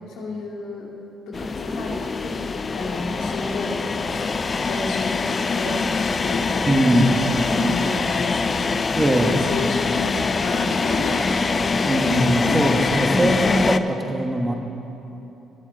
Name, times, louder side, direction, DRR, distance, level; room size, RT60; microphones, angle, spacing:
voice 1, 0.1-0.9 1.3-4.1 4.6-8.7 9.2-12.1 12.5-12.9, left 2 dB, 90° left, -3 dB, 2.3 m, -31 dB
sound 1, 1.3-13.8, left 4 dB, 35° left, 0.4 m, -24 dB
voice 2, 6.7-7.1 9.0-9.3 11.8-14.5, right 1 dB, 20° right, 3 dB, 1.3 m, -21 dB
21.0 x 7.3 x 4.0 m, 3.0 s
cardioid pair, 90°, 0 cm